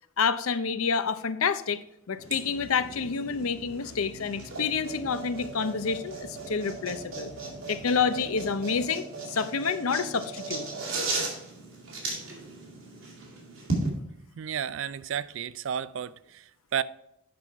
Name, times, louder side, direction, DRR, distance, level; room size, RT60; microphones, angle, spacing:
voice 1, 0.2-1.8 2.1-7.3 7.7-10.7, left 5 dB, 90° left, 0.6 m, -28 dB
sound 1, 2.2-8.8, left 1 dB, ahead, 2.0 m, -49 dB
sound 2, 2.2-13.9, right 3 dB, 80° right, 2.5 m, -37 dB
voice 2, 14.4-16.8, right 8 dB, 65° right, 0.4 m, -32 dB
8.7 x 5.6 x 4.6 m
head